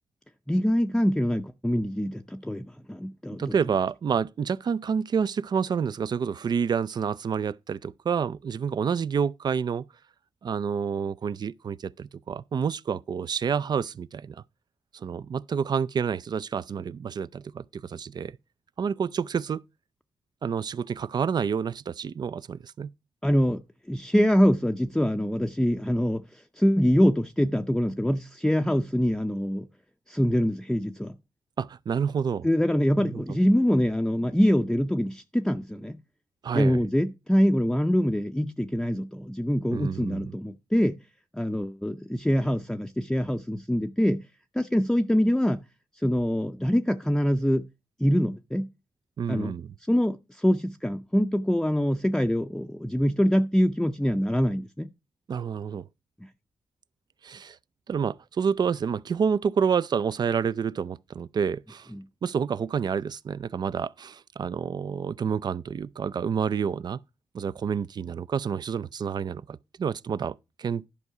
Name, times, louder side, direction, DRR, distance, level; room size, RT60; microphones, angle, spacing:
voice 1, 0.5-3.5 23.2-23.6 23.9-29.7 30.1-31.1 32.4-36.0 36.5-41.0 41.3-44.2 44.5-45.6 46.0-47.7 48.0-48.7 49.3-49.5 49.9-54.9 61.9-62.0, equal, 5° left, 0.5 m, -24 dB
voice 2, 3.4-9.9 10.4-14.4 14.9-18.3 18.8-19.6 20.4-22.9 31.6-32.5 33.0-33.2 36.4-36.8 39.7-40.3 49.2-49.7 55.3-55.8 57.2-57.6 57.9-61.9 62.2-67.0 67.3-70.9, right 6 dB, 55° right, 0.4 m, -29 dB
11.0 x 5.4 x 4.8 m
cardioid pair, 75°, 9 cm